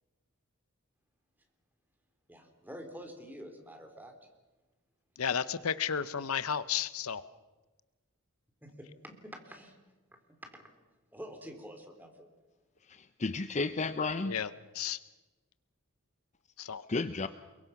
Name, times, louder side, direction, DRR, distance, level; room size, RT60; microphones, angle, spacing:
voice 1, 2.3-4.1 8.6-9.8 10.4-10.6 11.1-12.1, equal, 10° right, 4 dB, 3.6 m, -47 dB
voice 2, 5.2-7.2 14.3-14.5 14.7-15.0 16.6-16.8, left 7 dB, 85° left, 15 dB, 0.8 m, -32 dB
voice 3, 12.9-14.3 16.9-17.3, left 3 dB, 35° left, 11 dB, 0.7 m, -32 dB
29.0 x 22.5 x 5.9 m, 1.2 s
head